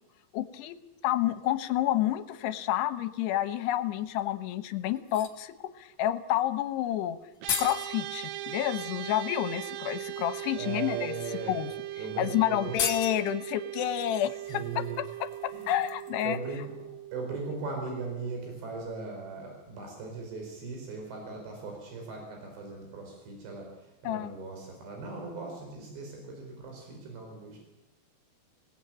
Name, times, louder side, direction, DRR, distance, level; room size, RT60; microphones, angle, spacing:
voice 1, 0.3-0.7 1.0-7.2 7.6-11.1 11.5-11.7 12.0-14.8 15.4-16.4 24.0-24.3, left 13 dB, 80° left, 11 dB, 3.0 m, -29 dB
sound 1, 4.1-4.2 5.0-5.4 6.9-7.0 7.2-7.9 9.3-9.4 10.0-10.3 11.1-11.2 11.6-11.7 12.0-12.1 12.6-13.4 14.5-16.5 16.8-16.9, left 7 dB, 50° left, 3.8 m, -36 dB
sound 2, 7.4-18.9, right 14 dB, 70° right, 2.1 m, -40 dB
voice 2, 10.5-11.5 12.0-12.8 14.5-15.0 15.5-15.9 16.2-16.7 17.1-27.6, right 4 dB, 90° right, 2 dB, 6.7 m, -38 dB
26.0 x 18.5 x 8.8 m, 1.0 s
omnidirectional pair, 4.8 m